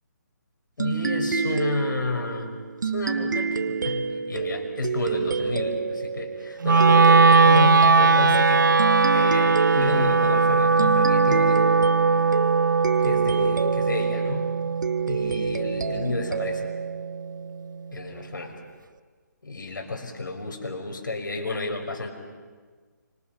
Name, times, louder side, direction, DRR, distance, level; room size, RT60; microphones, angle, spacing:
voice 1, 0.8-2.5 2.8-8.7 9.1-11.8 13.0-14.5 15.1-16.7 17.9-18.5 19.4-22.1, left 3 dB, 90° left, 3 dB, 5.8 m, -31 dB
sound 1, 0.8-18.0, right 5 dB, 70° right, 1.5 m, -29 dB
Wind instrument woodwind instrument, 6.6-16.8, right 4 dB, 90° right, 0.8 m, -20 dB
29.0 x 25.5 x 5.9 m, 1.5 s
hypercardioid pair, 170°, 10 cm